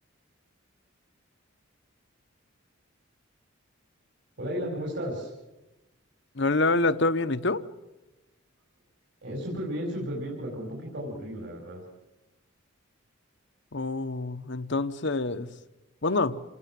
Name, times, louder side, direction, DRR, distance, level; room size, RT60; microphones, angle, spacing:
voice 1, 4.4-5.3 9.2-11.8, equal, 55° right, 5.3 m, -34 dB
voice 2, 6.3-7.6 13.7-15.5 16.0-16.4, left 2 dB, 60° left, 1.1 m, -26 dB
28.5 x 19.5 x 7.6 m
head